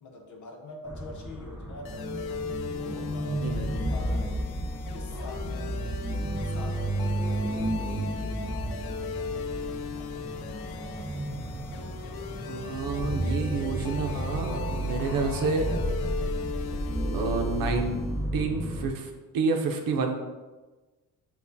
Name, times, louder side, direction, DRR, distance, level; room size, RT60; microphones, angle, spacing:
voice 1, 0.0-2.4 2.7-4.4 4.9-6.0 6.4-7.2 7.6-8.9 9.3-11.1, left 2 dB, 55° left, 2 dB, 0.9 m, -46 dB
sound 1, 0.8-18.9, right 1 dB, 5° right, 0.6 m, -32 dB
sound 2, 1.9-18.3, left 6 dB, 80° left, 0.5 m, -39 dB
voice 2, 3.4-3.7 12.5-15.7 17.1-18.0 18.3-20.1, right 4 dB, 70° right, 3 dB, 0.7 m, -29 dB
sound 3, 10.5-18.1, equal, 25° left, 1.4 m, -51 dB
7.1 x 2.4 x 2.7 m, 1.2 s
cardioid pair, 105°, 36 cm